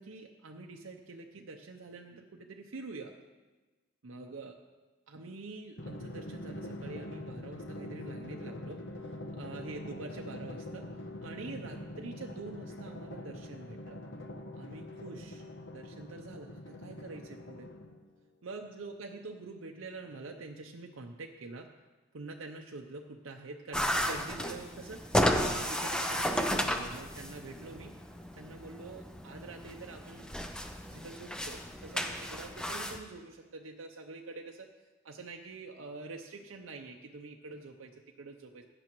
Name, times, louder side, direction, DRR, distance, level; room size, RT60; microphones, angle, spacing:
voice 1, 0.0-3.1 4.0-4.6 5.1-10.9 11.2-14.0 14.5-15.4 15.7-17.7 18.4-21.7 22.1-27.9 28.4-30.3 30.9-34.7 35.0-38.7, right 3 dB, 85° right, 2 dB, 0.7 m, -46 dB
Drum, 5.8-18.1, left 1 dB, 60° left, 0.9 m, -44 dB
sound 1, 23.7-33.0, equal, 5° left, 0.5 m, -33 dB
16.0 x 9.9 x 3.1 m, 1.2 s
head